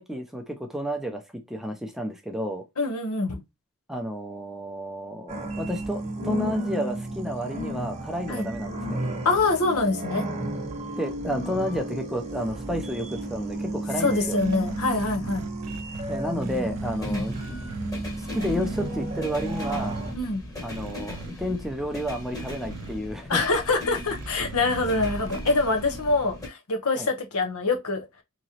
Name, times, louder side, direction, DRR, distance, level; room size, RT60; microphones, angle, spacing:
voice 1, 0.0-2.6 3.9-9.0 11.0-14.4 16.1-17.6 18.2-20.0 20.6-23.4 27.0-27.1, equal, ahead, 0.5 m, -31 dB
voice 2, 2.8-3.4 8.3-8.5 9.2-10.2 14.0-15.5 17.0-17.2 20.1-20.4 23.3-28.1, left 3 dB, 75° left, 0.9 m, -25 dB
angry machine looking for you, 5.3-20.1, right 1 dB, 30° right, 1.0 m, -32 dB
sound 1, 12.0-26.5, left 1 dB, 15° left, 1.1 m, -40 dB
sound 2, 14.4-17.0 17.3-17.9 18.3-18.9 19.4-20.0 20.7-21.3 22.4-22.9 24.1-26.0, right 6 dB, 85° right, 0.4 m, -40 dB
3.6 x 3.0 x 2.8 m
head